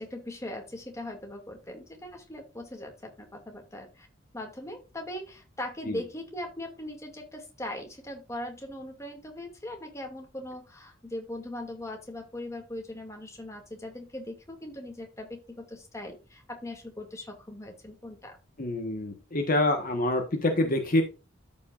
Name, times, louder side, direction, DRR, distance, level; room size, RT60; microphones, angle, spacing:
voice 1, 0.0-4.1 4.3-18.4, left 1 dB, 15° left, 2 dB, 2.3 m, -40 dB
voice 2, 18.6-21.0, left 1 dB, 45° left, 4 dB, 1.3 m, -26 dB
13.5 x 5.4 x 2.5 m, 0.31 s
head